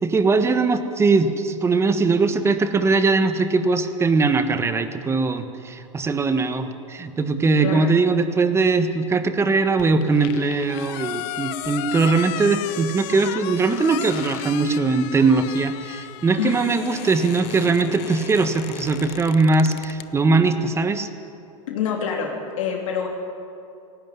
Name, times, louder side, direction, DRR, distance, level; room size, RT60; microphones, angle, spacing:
voice 1, 0.0-21.1, right 3 dB, 15° right, 9 dB, 1.5 m, -20 dB
voice 2, 7.6-7.9 16.3-16.6 21.7-22.3 22.6-23.1, left 8 dB, 75° left, 0 dB, 3.4 m, -26 dB
sound 1, 9.8-20.1, left 16 dB, 50° left, 0.8 m, -35 dB
17.0 x 17.0 x 9.4 m, 2.7 s
hypercardioid pair, 120°, 17 cm